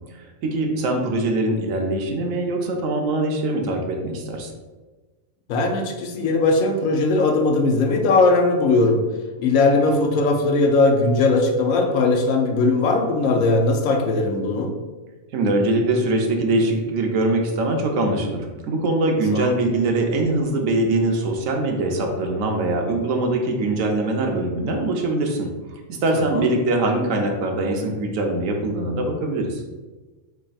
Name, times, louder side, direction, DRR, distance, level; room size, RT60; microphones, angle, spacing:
voice 1, 0.1-4.5 15.3-25.5 25.9-29.6, right 2 dB, 80° right, 2 dB, 1.0 m, -22 dB
voice 2, 5.5-9.0 9.4-14.7 19.3-19.5 26.1-26.5, left 3 dB, 80° left, 3 dB, 1.0 m, -19 dB
4.1 x 3.4 x 2.3 m, 1.2 s
omnidirectional pair, 1.4 m